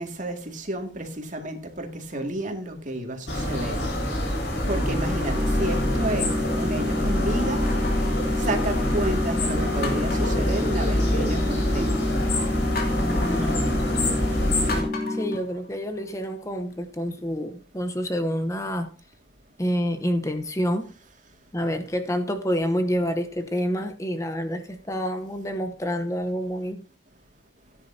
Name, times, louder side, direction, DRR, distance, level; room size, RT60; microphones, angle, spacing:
voice 1, 0.0-3.9 4.7-7.6 8.4-11.9, right 1 dB, 40° right, 4 dB, 2.2 m, -31 dB
sound 1, 2.1-2.6 3.3-3.4 5.0-6.5 7.7-9.0 9.4-9.5 9.8-11.3 12.8-13.5 14.7-16.3 16.7-16.8, left 3 dB, 50° left, 2.8 m, -38 dB
sound 2, 3.3-14.8, left 1 dB, 70° left, 4.7 m, -25 dB
sound 3, 5.4-15.4, left 2 dB, 25° right, 0.9 m, -29 dB
voice 2, 13.0-13.8 15.1-18.9 19.6-20.9 21.5-26.8, equal, 15° left, 7 dB, 0.9 m, -28 dB
16.5 x 9.9 x 2.8 m, 0.35 s
head